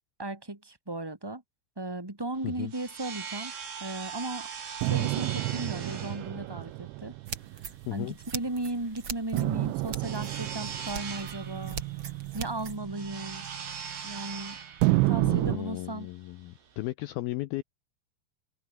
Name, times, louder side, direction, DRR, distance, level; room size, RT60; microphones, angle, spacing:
voice 1, 0.2-1.4 1.7-3.5 3.8-4.5 4.8-7.1 7.9-11.8 12.3-13.5 14.0-14.6 14.9-16.1, right 2 dB, 10° right, 1.1 m, -36 dB
sound 1, 2.4-16.9, right 6 dB, 65° right, 6.6 m, -42 dB
sound 2, 4.8-8.5 9.3-14.3 14.8-15.6, right 22 dB, 90° right, 2.9 m, -30 dB
sound 3, 7.3-12.8, right 6 dB, 40° right, 1.9 m, -42 dB
voice 2, 15.2-17.6, left 18 dB, 85° left, 2.1 m, -35 dB
open air
omnidirectional pair, 5.2 m